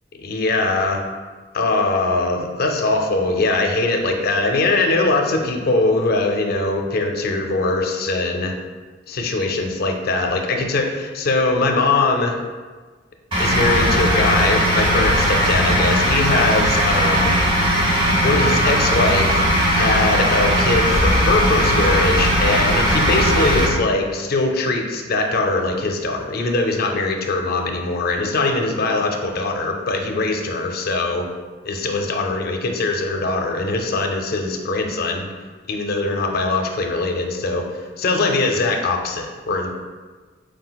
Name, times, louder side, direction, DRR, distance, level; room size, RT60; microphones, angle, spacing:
voice 1, 0.2-1.0 1.5-8.5 9.1-12.4 13.4-17.8 18.2-31.3 31.6-35.2 35.7-39.7, left 3 dB, 55° left, 3 dB, 0.5 m, -21 dB
sound 1, 13.3-23.6, equal, 30° right, 1.3 m, -18 dB
4.7 x 3.8 x 2.3 m, 1.4 s
head